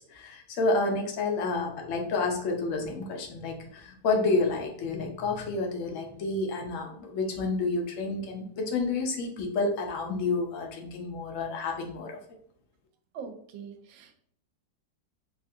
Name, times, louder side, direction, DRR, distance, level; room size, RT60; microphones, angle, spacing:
voice 1, 0.1-12.2, left 3 dB, 75° left, 1 dB, 0.7 m, -29 dB
voice 2, 13.1-14.2, right 6 dB, 80° right, 6 dB, 1.3 m, -42 dB
3.7 x 2.4 x 2.6 m, 0.64 s
omnidirectional pair, 2.1 m